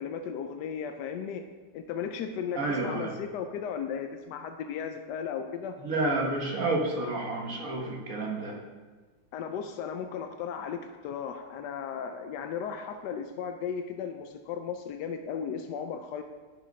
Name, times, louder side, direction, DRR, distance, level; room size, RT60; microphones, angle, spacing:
voice 1, 0.0-1.5 1.7-5.8 9.3-16.2, left 7 dB, 75° left, 6 dB, 0.9 m, -35 dB
voice 2, 2.6-3.1 5.8-8.6, right 2 dB, 45° right, -1 dB, 1.6 m, -30 dB
10.5 x 6.2 x 5.3 m, 1.4 s
omnidirectional pair, 2.4 m